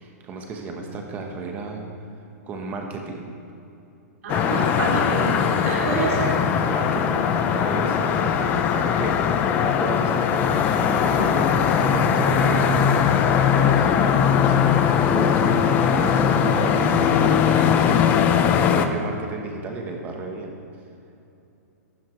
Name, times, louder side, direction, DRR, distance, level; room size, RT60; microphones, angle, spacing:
voice 1, 0.0-1.9 2.4-3.3 6.7-12.9 13.3-20.5, right 3 dB, 20° right, 2 dB, 1.2 m, -33 dB
voice 2, 4.2-6.3, right 3 dB, 55° right, -5 dB, 2.8 m, -27 dB
sound 1, 4.3-18.9, left 7 dB, 20° left, 0.5 m, -20 dB
13.5 x 12.0 x 3.3 m, 2.7 s
hypercardioid pair, 165°, 9 cm